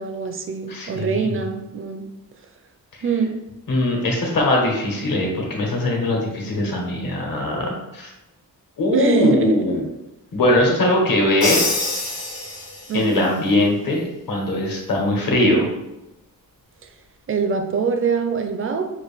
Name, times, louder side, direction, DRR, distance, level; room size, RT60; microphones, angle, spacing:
voice 1, 0.0-2.0 3.0-3.4 8.9-9.7 12.9-13.2 15.3-15.7 17.3-18.9, right 5 dB, 40° right, 6 dB, 0.4 m, -23 dB
voice 2, 0.7-1.4 3.7-8.1 8.8-9.8 10.3-11.9 12.9-14.0 14.3-15.7, left 1 dB, 70° left, -1 dB, 1.2 m, -21 dB
Crash cymbal, 11.4-13.1, left 2 dB, 85° left, 1.2 m, -24 dB
5.7 x 2.6 x 3.4 m, 0.94 s
wide cardioid pair, 175°, 35 cm